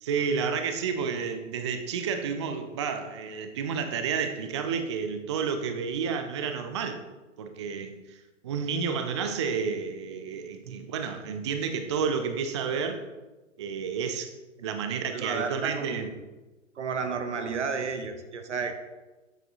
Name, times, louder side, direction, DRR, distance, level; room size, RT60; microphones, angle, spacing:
voice 1, 0.0-7.0 7.4-8.2 8.4-13.1 13.6-16.1, right 6 dB, 25° right, 0.4 m, -31 dB
voice 2, 15.1-16.1 16.7-18.7, right 5 dB, 65° right, 1.2 m, -32 dB
8.2 x 6.7 x 3.9 m
figure-of-eight pair, 120°, 39 cm